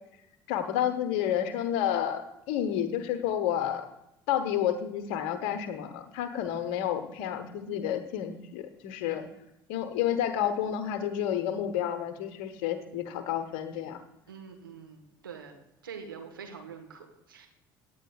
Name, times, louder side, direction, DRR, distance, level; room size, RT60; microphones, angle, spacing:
voice 1, 0.5-3.8 4.3-9.2 9.7-14.0, left 10 dB, 60° left, 9 dB, 1.1 m, -30 dB
voice 2, 14.3-15.6 15.8-17.5, right 6 dB, 80° right, 3 dB, 1.5 m, -45 dB
17.0 x 9.4 x 2.4 m, 0.87 s
figure-of-eight pair, 55°, 11 cm